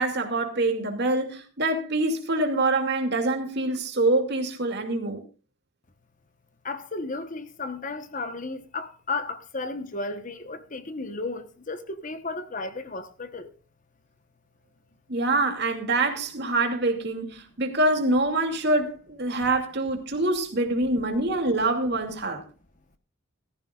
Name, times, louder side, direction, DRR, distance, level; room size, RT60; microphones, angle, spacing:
voice 1, 0.0-5.2 15.1-22.4, right 2 dB, 50° right, 2.6 m, -25 dB
voice 2, 6.6-13.5, left 3 dB, 40° left, 1.1 m, -34 dB
18.5 x 14.5 x 2.4 m
head